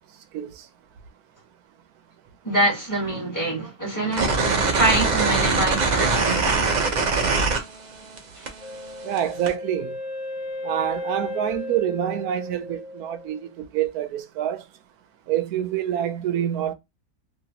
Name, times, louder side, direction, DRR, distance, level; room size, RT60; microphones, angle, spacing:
voice 1, 0.3-0.7 9.0-10.0 10.6-14.6 15.3-16.7, right 10 dB, 85° right, 1.1 m, -26 dB
voice 2, 2.4-6.7 8.3-8.5, right 1 dB, 15° left, 1.4 m, -25 dB
sound 1, 4.1-8.2 8.5-9.5, right 4 dB, 45° right, 0.6 m, -22 dB
Wind instrument woodwind instrument, 8.6-13.5, left 2 dB, 60° left, 1.0 m, -34 dB
3.0 x 2.8 x 2.8 m
omnidirectional pair, 1.6 m